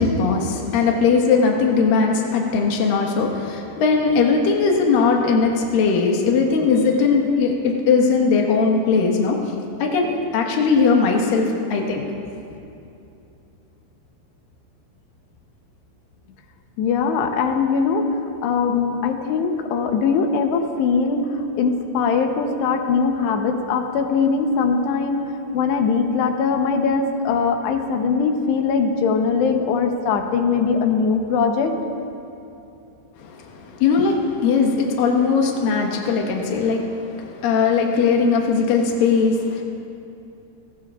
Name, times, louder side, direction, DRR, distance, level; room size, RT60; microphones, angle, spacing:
voice 1, 0.0-9.4 9.8-12.0 33.2-39.6, left 5 dB, 65° left, 0 dB, 2.9 m, -19 dB
voice 2, 16.8-25.2 25.5-31.8, left 5 dB, 90° left, 4 dB, 3.1 m, -21 dB
25.0 x 19.0 x 2.5 m, 2.7 s
omnidirectional pair, 4.8 m